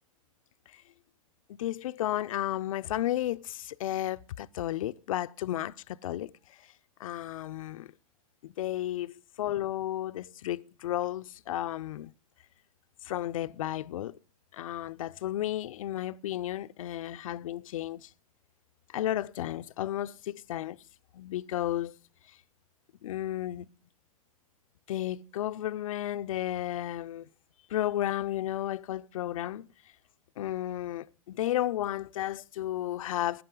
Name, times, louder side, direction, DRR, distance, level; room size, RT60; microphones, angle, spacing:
voice 1, 1.5-6.6 7.0-7.9 8.4-12.1 13.0-14.2 14.5-18.1 18.9-20.8 21.1-21.9 23.0-23.7 24.9-27.3 27.7-29.7 30.4-33.4, left 13 dB, 65° left, 0.6 m, -33 dB
16.0 x 10.5 x 3.8 m
hypercardioid pair, 115°, 18 cm